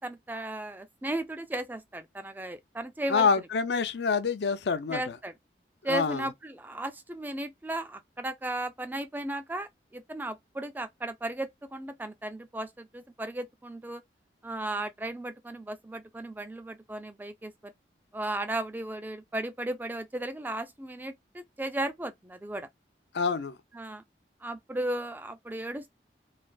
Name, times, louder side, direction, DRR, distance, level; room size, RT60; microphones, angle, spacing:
voice 1, 0.0-3.3 4.9-5.3 5.8-14.0 14.4-17.7 18.1-22.7 23.7-24.0 24.4-25.9, right 1 dB, 10° right, 0.3 m, -35 dB
voice 2, 3.1-5.2 5.9-6.3 23.1-23.6, left 5 dB, 75° left, 0.5 m, -27 dB
3.2 x 2.4 x 2.2 m
head